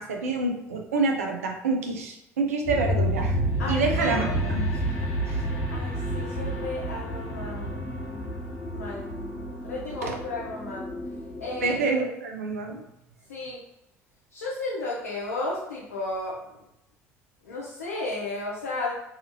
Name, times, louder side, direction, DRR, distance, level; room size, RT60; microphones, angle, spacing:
voice 1, 0.0-3.4 3.7-4.7 5.3-5.5 10.0-10.2 11.6-12.8, right 3 dB, 85° right, 2 dB, 0.4 m, -27 dB
sound 1, 2.7-11.9, equal, 60° left, 0.9 m, -30 dB
sound 2, 4.0-6.0, equal, 40° right, 1.2 m, -37 dB
voice 2, 5.7-7.7 8.7-9.1 9.6-10.9 11.4-11.8 13.3-13.6 14.3-16.4 17.4-18.9, left 2 dB, 85° left, -5 dB, 0.5 m, -33 dB
2.8 x 2.4 x 2.6 m, 0.85 s
hypercardioid pair, 60°, 8 cm